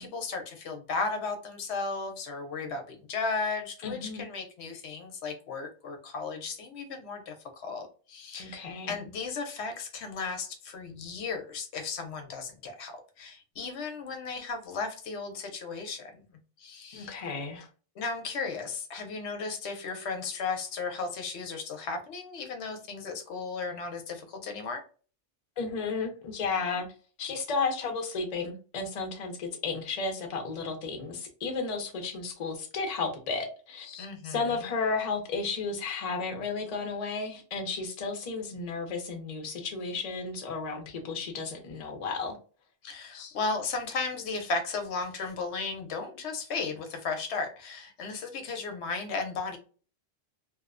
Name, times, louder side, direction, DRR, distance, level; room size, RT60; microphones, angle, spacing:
voice 1, 0.0-16.2 16.6-17.2 18.0-24.8 34.0-34.7 42.8-49.6, left 4 dB, 75° left, 5 dB, 0.8 m, -35 dB
voice 2, 3.8-4.3 8.4-9.0 16.9-17.7 18.9-19.0 25.6-26.9 27.2-42.4 43.1-43.4, left 4 dB, 45° left, 3 dB, 0.5 m, -33 dB
2.5 x 2.1 x 2.4 m, 0.37 s
omnidirectional pair, 1.2 m